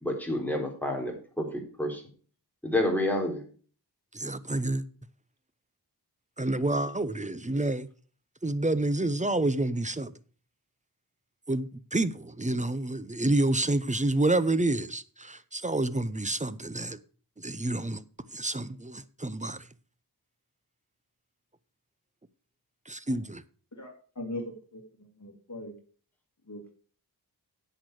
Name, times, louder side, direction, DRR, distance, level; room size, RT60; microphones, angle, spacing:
voice 1, 0.0-2.0 2.6-3.4, left 1 dB, 5° left, 4.1 m, -29 dB
voice 2, 4.1-4.8 6.4-7.9 8.4-10.1 11.5-17.0 17.4-18.0 18.3-19.6 22.9-23.4, right 2 dB, 20° right, 0.8 m, -28 dB
voice 3, 25.2-25.7 26.5-26.7, left 1 dB, 45° left, 2.9 m, -38 dB
10.5 x 8.0 x 4.8 m
wide cardioid pair, 85°, 40 cm